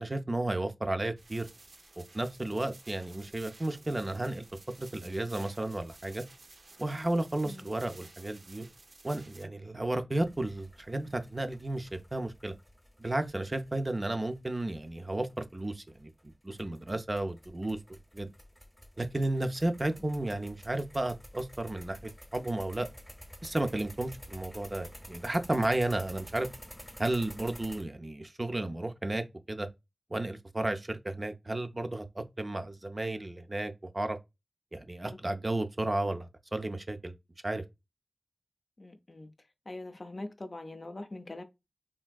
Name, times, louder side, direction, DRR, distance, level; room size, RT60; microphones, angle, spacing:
voice 1, 0.0-1.5 2.0-4.4 4.8-6.2 6.8-8.7 9.0-12.5 13.0-17.8 18.1-18.3 19.0-22.9 23.4-26.5 27.0-29.7 30.1-34.2 34.7-37.1 37.4-37.6, right 2 dB, 35° right, 0.4 m, -33 dB
sound 1, 1.2-9.4, right 2 dB, 85° right, 0.5 m, -54 dB
sound 2, 10.2-27.8, equal, 5° left, 0.7 m, -51 dB
voice 2, 38.8-39.3 39.7-41.4, left 2 dB, 50° left, 0.4 m, -42 dB
3.3 x 2.6 x 2.2 m
wide cardioid pair, 65°, 0 cm